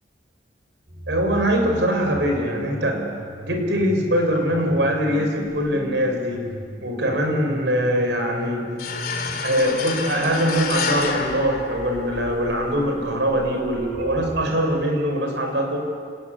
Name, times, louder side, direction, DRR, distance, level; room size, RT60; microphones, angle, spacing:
sound 1, 0.9-14.6, right 1 dB, 50° right, 3.8 m, -37 dB
voice 1, 1.1-3.0 3.4-6.4 6.8-8.6 9.4-15.8, equal, 85° right, 3 dB, 5.3 m, -22 dB
sound 2, 8.8-12.4, left 5 dB, 60° left, 3.0 m, -28 dB
29.0 x 14.0 x 9.8 m, 2.1 s
head